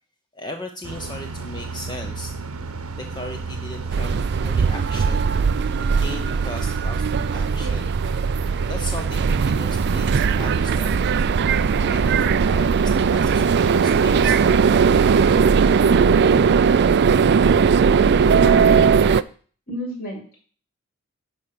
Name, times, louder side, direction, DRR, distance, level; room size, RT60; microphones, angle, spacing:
voice 1, 0.3-2.4 3.0-7.1 7.3-7.9 8.6-11.0 11.7-14.6, left 1 dB, 20° left, 5 dB, 0.8 m, -37 dB
sound 1, 0.8-15.4, right 4 dB, 70° right, 1.0 m, -31 dB
sound 2, 3.9-19.2, right 6 dB, 50° right, 0.4 m, -18 dB
voice 2, 18.2-18.9 19.7-20.4, equal, 45° left, -3 dB, 5.3 m, -31 dB
11.5 x 4.6 x 6.8 m, 0.43 s
head